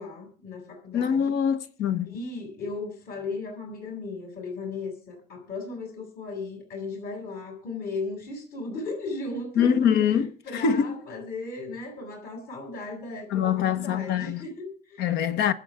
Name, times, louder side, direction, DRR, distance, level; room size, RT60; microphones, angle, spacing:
voice 1, 0.0-1.3 2.0-15.1, left 3 dB, 65° left, 7.1 m, -36 dB
voice 2, 0.9-2.1 9.5-11.0 13.3-14.4 15.0-15.5, left 8 dB, 80° left, 1.4 m, -24 dB
24.0 x 8.5 x 3.7 m
cardioid pair, 110°, 17 cm